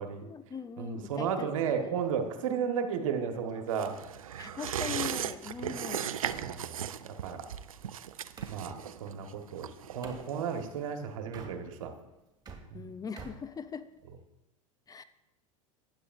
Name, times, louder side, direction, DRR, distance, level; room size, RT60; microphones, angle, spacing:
voice 1, 0.0-1.5 1.8-1.9 4.4-6.1 12.7-13.9 14.9-15.0, left 6 dB, 20° left, 12 dB, 0.5 m, -41 dB
voice 2, 0.8-3.9 5.6-5.8 6.3-7.5 8.5-8.7 9.0-11.9 12.7-12.9, right 7 dB, 75° right, 5 dB, 1.4 m, -34 dB
sound 1, 3.3-8.6 10.0-10.3 11.2-12.0 12.3-14.2, right 4 dB, 25° right, 2.2 m, -52 dB
sound 2, 3.7-10.8 11.1-11.2, right 9 dB, 90° right, 0.4 m, -37 dB
15.0 x 9.9 x 2.6 m, 1.0 s
hypercardioid pair, 90°, 17 cm